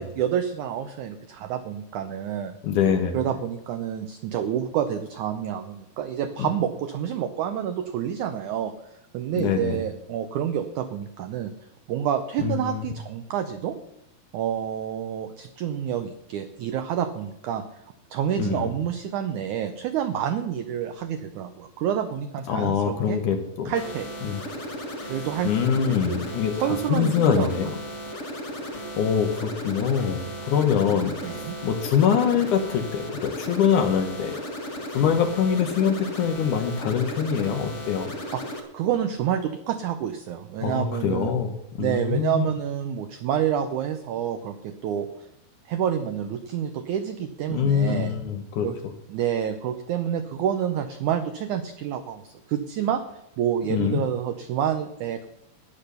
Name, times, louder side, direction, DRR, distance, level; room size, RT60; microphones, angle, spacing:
voice 1, 0.0-2.5 3.1-8.7 9.1-11.5 11.9-13.7 14.3-17.6 18.1-23.2 23.6-24.1 25.1-26.2 26.5-27.7 31.2-31.6 38.3-41.3 41.8-45.3 45.7-48.1 48.6-48.8 49.1-53.0 53.4-55.3, right 9 dB, 90° right, 9 dB, 1.7 m, -28 dB
voice 2, 2.6-3.2 9.3-9.8 12.4-12.9 18.4-18.7 22.5-23.7 24.2-24.4 25.4-27.7 29.0-30.2 30.5-31.1 31.6-34.4 34.9-38.1 40.6-42.4 47.5-48.7 53.7-54.0, left 7 dB, 65° left, 7 dB, 2.2 m, -24 dB
sound 1, 23.7-38.6, equal, 45° left, 0.9 m, -35 dB
12.5 x 10.0 x 6.7 m, 0.83 s
omnidirectional pair, 4.5 m